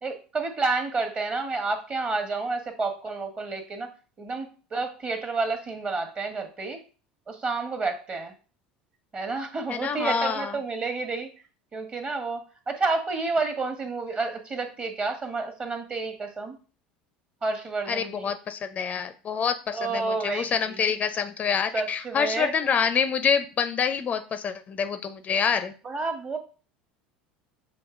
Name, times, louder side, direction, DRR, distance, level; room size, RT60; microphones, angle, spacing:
voice 1, 0.0-3.9 4.2-6.8 7.3-8.3 9.1-11.3 11.7-16.6 17.4-18.3 19.7-20.8 21.7-22.5 25.8-26.4, right 3 dB, 30° right, 6 dB, 1.2 m, -30 dB
voice 2, 9.7-10.6 17.9-25.7, left 6 dB, 35° left, 9 dB, 0.4 m, -27 dB
7.0 x 2.8 x 2.5 m, 0.37 s
hypercardioid pair, 70°, 4 cm